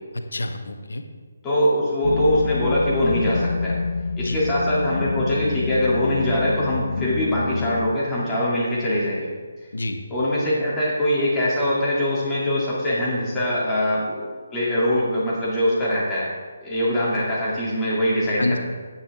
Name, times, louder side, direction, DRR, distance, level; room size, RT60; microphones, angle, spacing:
voice 1, 0.1-1.0 4.2-4.4 9.7-10.0 18.4-18.6, left 2 dB, 70° left, 6 dB, 1.1 m, -28 dB
voice 2, 1.4-3.8 4.2-9.3 10.1-16.3 16.6-18.6, equal, 15° left, -8 dB, 3.1 m, -22 dB
sound 1, 2.0-8.0, left 4 dB, 55° left, 0.3 m, -27 dB
9.8 x 8.8 x 3.8 m, 1.5 s
figure-of-eight pair, 145°, 0 cm